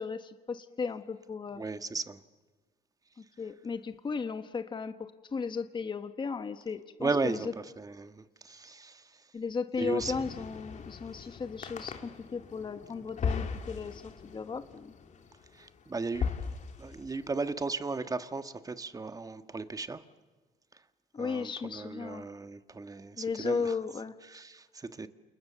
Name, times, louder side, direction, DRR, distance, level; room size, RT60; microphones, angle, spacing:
voice 1, 0.0-1.6 3.2-7.5 9.3-14.9 21.1-22.2 23.2-24.2, left 5 dB, 30° left, 1.3 m, -35 dB
voice 2, 1.6-2.2 7.0-9.2 9.8-10.2 15.5-16.3 16.8-20.0 21.2-23.7 24.3-25.1, right 3 dB, 20° right, 1.6 m, -36 dB
sound 1, 10.0-17.4, left 6 dB, 45° left, 2.8 m, -38 dB
29.5 x 29.0 x 7.0 m
cardioid pair, 110°, 17 cm